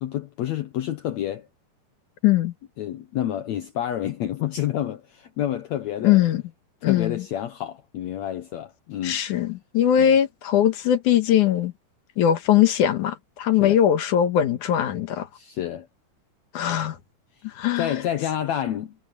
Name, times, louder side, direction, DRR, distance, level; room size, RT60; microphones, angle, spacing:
voice 1, 0.0-1.5 2.8-6.2 6.8-9.2 10.0-10.1 13.6-13.8 15.3-15.9 17.8-18.9, left 11 dB, 85° left, 1.5 m, -29 dB
voice 2, 2.2-2.5 6.0-6.4 6.8-7.2 9.0-11.7 12.2-15.3 16.5-17.0 17.4-18.0, left 10 dB, 60° left, 2.6 m, -21 dB
omnidirectional pair, 4.4 m